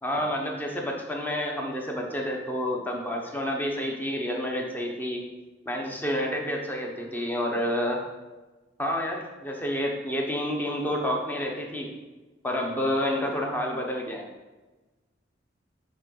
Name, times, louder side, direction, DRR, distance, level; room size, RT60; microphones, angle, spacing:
voice 1, 0.0-5.2 5.7-8.0 8.8-11.9 12.4-14.2, equal, 10° left, 0 dB, 1.0 m, -29 dB
7.8 x 3.8 x 5.3 m, 1.2 s
head